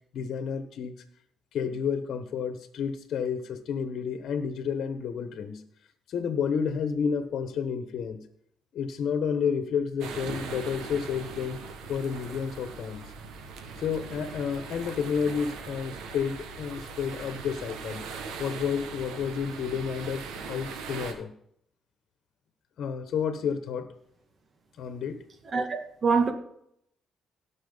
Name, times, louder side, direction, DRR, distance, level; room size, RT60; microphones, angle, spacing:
voice 1, 0.1-1.0 1.5-5.6 6.1-8.2 8.7-11.6 11.9-13.0 13.8-18.0 18.4-21.3 22.8-23.9 24.8-25.2, left 6 dB, 70° left, 1.3 m, -30 dB
sound 1, 10.0-21.1, right 5 dB, 90° right, 1.6 m, -40 dB
voice 2, 25.5-26.3, right 5 dB, 45° right, 2.1 m, -25 dB
17.5 x 6.2 x 4.0 m
cardioid pair, 90°, 0 cm